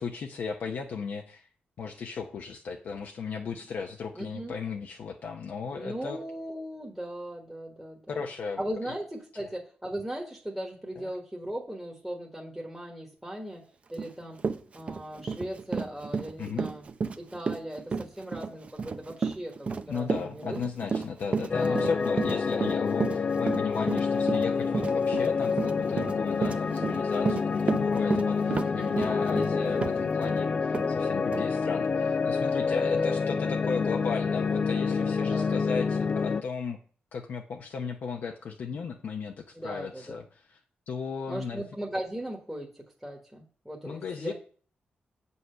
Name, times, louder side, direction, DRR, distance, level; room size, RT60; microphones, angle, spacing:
voice 1, 0.0-1.5 1.8-6.2 8.1-8.6 8.9-9.0 11.0-11.1 16.4-16.7 19.9-36.8 37.1-40.6 40.9-41.6 43.8-44.3, left 5 dB, 70° left, 2 dB, 0.8 m, -36 dB
voice 2, 4.1-4.6 5.7-8.2 8.6-13.6 13.9-14.4 14.7-16.8 17.2-20.6 21.6-22.1 25.5-25.8 26.5-26.9 28.5-28.9 32.7-33.1 35.2-35.6 39.5-40.2 41.3-44.3, right 1 dB, 5° right, -1 dB, 1.4 m, -38 dB
Run, 14.0-14.1 14.4-30.4 30.7-30.9 31.3-31.4, right 5 dB, 40° right, 0.6 m, -32 dB
sound 1, 21.5-36.4, left 5 dB, 35° left, 0.3 m, -27 dB
7.9 x 5.6 x 5.7 m, 0.43 s
wide cardioid pair, 125°, 3 cm